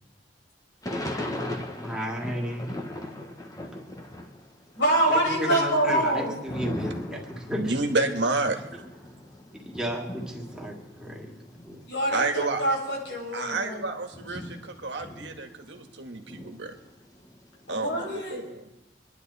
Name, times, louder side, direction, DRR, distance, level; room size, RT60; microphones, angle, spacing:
Thunder / Rain, 0.8-4.5 4.8-11.8 12.4-12.5 12.7-15.9 16.3-18.0, left 1 dB, 20° left, 1.4 m, -38 dB
voice 1, 1.8-2.7 5.1-7.7 9.6-11.3 11.6-11.8, equal, 5° right, -2 dB, 2.4 m, -33 dB
voice 2, 4.8-6.3 11.9-12.2 12.6-13.9 17.7-18.4, right 1 dB, 85° left, -2 dB, 6.5 m, -25 dB
voice 3, 7.6-8.8 12.1-12.6 13.3-16.7 17.7-18.7, right 3 dB, 70° right, 5 dB, 1.7 m, -30 dB
25.5 x 10.5 x 4.2 m, 0.95 s
head